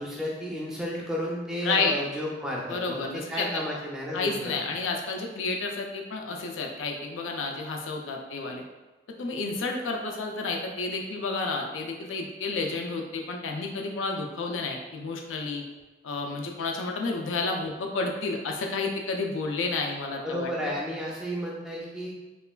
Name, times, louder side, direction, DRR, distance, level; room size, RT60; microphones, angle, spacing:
voice 1, 0.0-4.8 20.2-22.1, equal, 5° right, -4 dB, 0.4 m, -33 dB
voice 2, 2.7-3.5 4.1-8.6 9.2-15.6 16.0-20.7, left 3 dB, 85° left, 2 dB, 0.4 m, -31 dB
3.0 x 2.2 x 2.2 m, 1.1 s
head